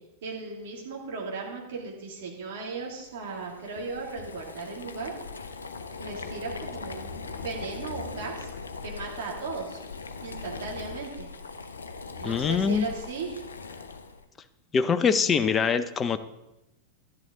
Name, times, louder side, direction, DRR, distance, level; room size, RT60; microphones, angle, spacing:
voice 1, 0.2-5.1 6.0-8.5 8.8-9.8 10.2-11.3 12.2-13.4, right 4 dB, 55° right, -2 dB, 2.7 m, -36 dB
Boiling, 3.0-14.2, left 4 dB, 75° left, 0.7 m, -40 dB
voice 2, 12.2-12.9 14.7-16.2, left 6 dB, 20° left, 11 dB, 0.6 m, -24 dB
11.5 x 10.5 x 3.8 m, 0.93 s
figure-of-eight pair, 90°, 0 cm